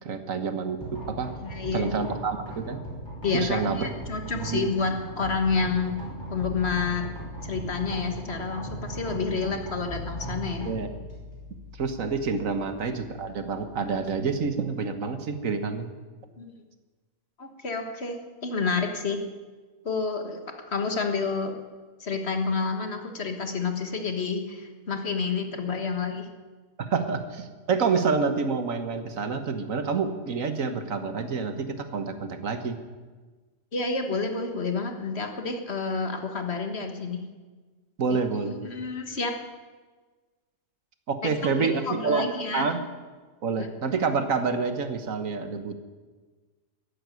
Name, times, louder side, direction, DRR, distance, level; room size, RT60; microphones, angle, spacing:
voice 1, 0.0-1.3 1.7-2.8 3.3-3.9 4.3-4.7 10.6-10.9 11.8-15.9 26.8-32.8 38.0-38.5 41.1-42.3 42.5-42.8 43.4-45.8, right 5 dB, 75° right, 9 dB, 1.7 m, -28 dB
sound 1, 0.8-14.7, equal, 20° left, 5.6 m, -39 dB
voice 2, 1.4-1.9 3.2-5.9 6.3-7.1 7.4-10.7 16.4-16.5 17.4-19.2 19.8-20.4 20.7-21.5 22.0-26.3 33.7-37.2 38.1-39.3 41.4-42.7 43.6-43.7, left 4 dB, 50° left, 5 dB, 1.8 m, -29 dB
13.5 x 11.0 x 9.4 m, 1.4 s
omnidirectional pair, 1.4 m